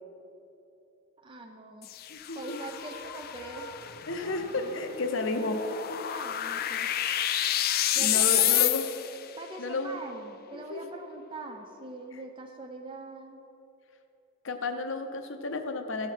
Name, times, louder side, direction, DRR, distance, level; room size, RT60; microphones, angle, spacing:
voice 1, 1.2-1.9 2.3-3.7 6.1-6.9 7.9-8.7 9.4-13.4, right 2 dB, 25° right, 2 dB, 0.5 m, -42 dB
sound 1, 1.8-9.3, left 12 dB, 45° left, 0.3 m, -29 dB
voice 2, 2.1-2.6 4.1-5.6 8.0-8.9 9.6-10.0 10.7-10.8 12.1-12.2 14.4-16.1, left 2 dB, 60° left, 6 dB, 0.7 m, -32 dB
sound 2, 2.3-7.2, left 3 dB, 15° left, 0.8 m, -46 dB
15.0 x 5.8 x 4.5 m, 2.8 s
head